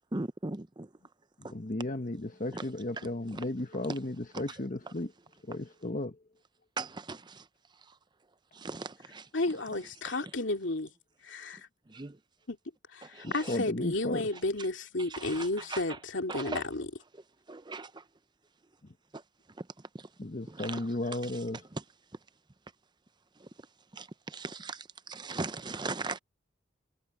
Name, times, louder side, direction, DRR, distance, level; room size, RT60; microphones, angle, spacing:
voice 1, 0.1-0.9 1.4-1.5 2.5-2.7 3.0-3.4 4.3-4.4 6.8-7.5 7.9-8.0 8.5-9.3 10.1-10.3 11.9-12.2 13.0-13.6 15.0-16.0 16.3-16.6 17.5-18.0 19.1-19.2 19.6-19.7 19.9-20.1 20.5-20.9 21.2-21.4 21.7-21.8 23.4-23.5 23.9-26.2, right 3 dB, 25° right, 0.7 m, -39 dB
voice 2, 1.4-5.1 5.4-6.2 13.2-14.3 18.8-18.9 20.2-21.6, left 1 dB, 45° left, 1.2 m, -35 dB
voice 3, 9.3-10.9 11.2-11.7 12.5-12.6 12.9-16.9, left 2 dB, 70° left, 2.8 m, -32 dB
head